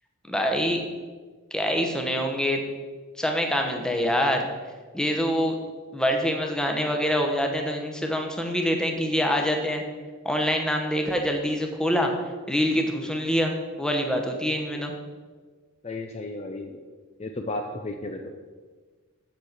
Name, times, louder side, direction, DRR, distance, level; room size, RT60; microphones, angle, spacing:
voice 1, 0.3-0.8 1.5-2.6 3.2-4.5 4.9-5.6 5.9-9.8 10.2-12.1 12.5-14.9, equal, 5° left, 2 dB, 1.0 m, -25 dB
voice 2, 15.8-16.8 17.2-18.3, left 2 dB, 30° left, 4 dB, 0.5 m, -34 dB
8.3 x 6.5 x 6.0 m, 1.4 s
head